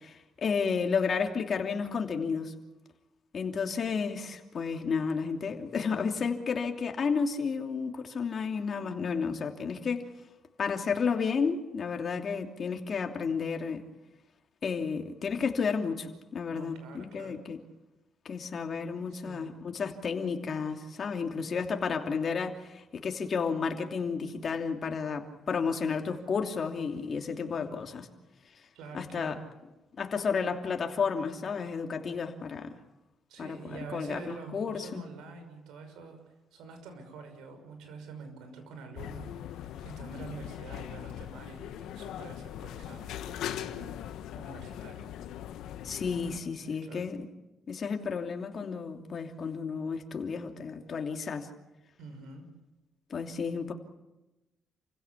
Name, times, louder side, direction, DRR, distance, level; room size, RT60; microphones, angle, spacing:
voice 1, 0.0-2.5 3.3-10.1 10.6-13.8 14.6-17.6 18.2-28.1 28.9-29.4 30.0-32.7 33.4-35.0 45.8-47.3 47.7-51.5 53.1-53.7, left 5 dB, 50° left, 4 dB, 2.9 m, -32 dB
voice 2, 16.5-17.4 19.1-19.6 28.7-29.4 33.3-36.2 36.5-44.0 44.3-45.1 46.4-47.1 52.0-52.4, right 4 dB, 90° right, 7 dB, 6.0 m, -46 dB
sound 1, 39.0-46.4, left 11 dB, 85° left, 1.3 m, -40 dB
29.0 x 16.5 x 8.5 m, 1.0 s
cardioid pair, 90°, 0 cm